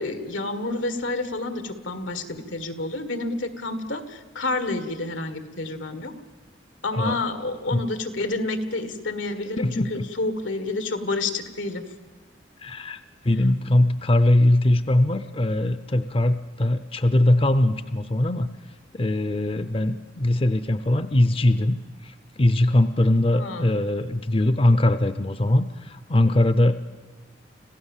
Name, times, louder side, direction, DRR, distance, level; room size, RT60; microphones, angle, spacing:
voice 1, 0.0-6.1 6.8-11.9 23.3-23.7, left 2 dB, 90° left, 10 dB, 1.8 m, -29 dB
voice 2, 9.6-10.1 12.6-13.0 13.2-18.5 18.9-26.7, left 1 dB, 30° left, 12 dB, 0.6 m, -21 dB
26.0 x 15.5 x 7.3 m, 1.4 s
head